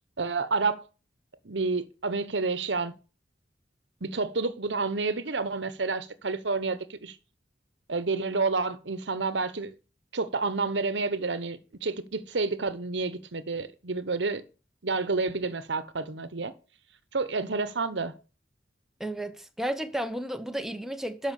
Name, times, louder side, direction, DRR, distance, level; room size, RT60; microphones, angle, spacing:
voice 1, 0.2-0.8 1.4-2.9 4.0-7.2 7.9-9.7 10.1-14.4 14.8-16.5 17.1-18.2, right 3 dB, 75° right, 1.0 m, -29 dB
voice 2, 19.0-21.3, right 1 dB, ahead, 0.9 m, -32 dB
12.0 x 5.8 x 6.9 m
head